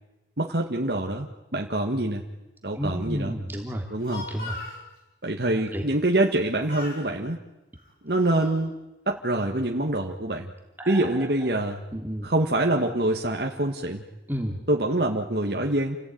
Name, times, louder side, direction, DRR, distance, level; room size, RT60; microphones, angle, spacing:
voice 1, 0.4-2.2 2.6-3.4 3.9-4.3 5.2-7.4 8.0-8.7 9.1-10.5 10.9-11.8 12.2-14.0 14.7-16.0, right 1 dB, 60° right, 1 dB, 1.8 m, -25 dB
voice 2, 2.8-3.8 4.3-4.6 5.7-5.8 10.8-11.3 11.9-12.3 14.3-14.6, equal, 10° right, 1 dB, 2.7 m, -31 dB
Speech, 3.8-4.8 6.2-6.4 6.7-7.1 7.8-8.6, left 2 dB, 55° left, 5.8 m, -39 dB
29.0 x 17.5 x 9.4 m, 1.0 s
head